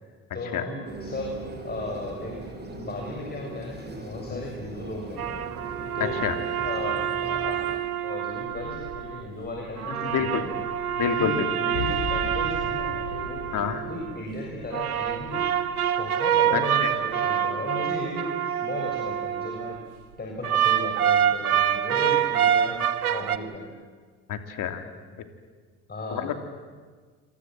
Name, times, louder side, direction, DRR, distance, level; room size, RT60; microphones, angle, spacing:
voice 1, 0.3-1.4 1.6-2.4 2.7-5.5 5.9-6.2 6.6-7.6 8.0-10.5 11.1-15.5 16.0-19.8 20.2-22.8 23.1-23.7 25.9-26.3, left 2 dB, 20° left, -1 dB, 6.8 m, -36 dB
sound 1, 0.9-7.8, right 2 dB, 25° right, 5.8 m, -40 dB
sound 2, 5.2-9.2 9.8-14.2 14.7-19.8 20.4-23.4, right 9 dB, 85° right, 1.1 m, -26 dB
voice 2, 6.0-6.3 9.9-10.4 11.0-11.5 13.5-13.8 16.5-16.9 24.3-24.9 26.1-26.5, left 8 dB, 45° left, 7 dB, 3.2 m, -28 dB
sound 3, 8.3-16.4, left 5 dB, 75° left, 6.4 m, -40 dB
28.0 x 27.0 x 7.7 m, 1.5 s
hypercardioid pair, 65°, 43 cm